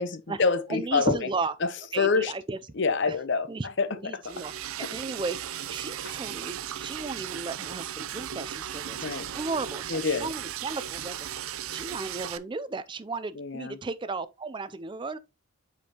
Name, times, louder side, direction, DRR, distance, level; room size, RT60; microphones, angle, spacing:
voice 1, 0.0-1.3 1.6-1.7 2.0-2.3 2.8-3.5 3.8-4.3 4.8-4.9 6.0-6.1 9.0-9.3 9.9-10.3 13.4-13.8, left 4 dB, 55° left, 0.7 m, -27 dB
voice 2, 0.7-1.5 1.9-2.6 3.1-3.2 3.5-4.5 4.9-9.9 10.2-15.2, right 3 dB, 20° right, 0.4 m, -35 dB
Liquid, 4.2-12.4, right 10 dB, 85° right, 0.5 m, -36 dB
7.7 x 5.3 x 2.9 m
head